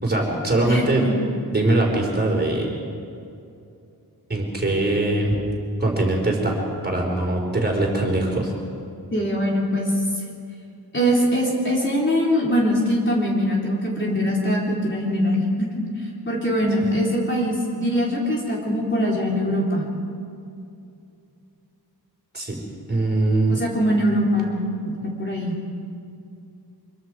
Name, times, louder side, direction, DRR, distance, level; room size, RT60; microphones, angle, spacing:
voice 1, 0.0-1.1 1.5-2.7 4.3-5.4 5.8-6.6 6.8-8.5 22.3-22.6 22.9-23.6, right 2 dB, 25° right, -1 dB, 4.4 m, -22 dB
voice 2, 0.6-1.2 9.1-10.0 10.9-15.7 16.0-19.9 23.5-25.5, equal, 30° left, -3 dB, 3.6 m, -22 dB
25.0 x 22.5 x 4.9 m, 2.5 s
wide cardioid pair, 125°, 39 cm